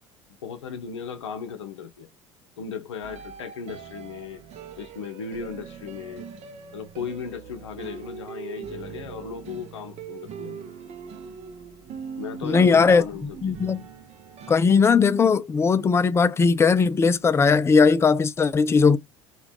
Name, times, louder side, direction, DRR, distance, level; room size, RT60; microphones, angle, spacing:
voice 1, 0.4-2.1 2.6-4.4 4.8-6.3 6.7-10.7 12.2-13.7, left 6 dB, 75° left, 0.6 m, -36 dB
sound 1, 3.0-14.6, right 6 dB, 45° right, 0.7 m, -41 dB
voice 2, 12.4-13.0 13.4-13.8 14.5-19.0, left 5 dB, 15° left, 0.4 m, -18 dB
2.9 x 2.4 x 3.4 m
figure-of-eight pair, 70°, 15 cm